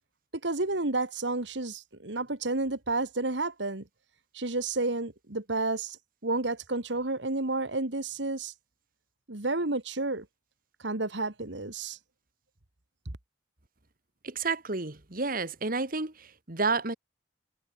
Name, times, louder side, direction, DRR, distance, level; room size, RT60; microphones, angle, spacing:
voice 1, 0.4-3.8 4.3-6.0 6.2-8.5 9.3-10.3 10.8-12.0, right 2 dB, 70° right, 2.1 m, -31 dB
voice 2, 14.2-16.9, right 3 dB, 50° right, 2.1 m, -30 dB
head